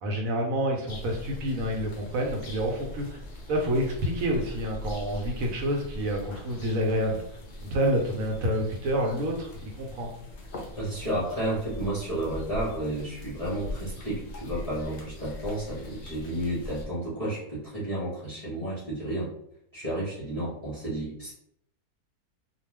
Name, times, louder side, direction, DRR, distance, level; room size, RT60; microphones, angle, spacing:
voice 1, 0.0-3.2 3.5-7.2 7.6-10.1, equal, 70° right, 1 dB, 1.0 m, -28 dB
sound 1, 0.9-16.9, left 1 dB, 70° left, 0.4 m, -41 dB
voice 2, 10.8-19.3 19.7-21.3, right 1 dB, 30° left, -8 dB, 0.7 m, -32 dB
2.3 x 2.3 x 3.2 m, 0.72 s
omnidirectional pair, 1.6 m